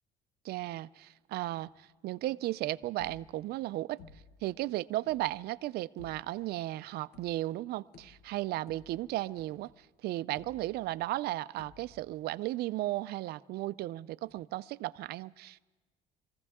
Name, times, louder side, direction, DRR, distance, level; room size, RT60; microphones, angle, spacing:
voice 1, 0.4-4.0 4.4-15.6, right 16 dB, 70° right, 15 dB, 0.4 m, -35 dB
sound 1, 3.0-3.6 4.0-4.5 5.0-5.4 6.0-6.5 7.1-7.6 7.9-9.8 10.4-11.1 11.6-12.1, left 4 dB, 70° left, 1.3 m, -56 dB
24.0 x 15.0 x 3.6 m, 1.3 s
cardioid pair, 110°, 17 cm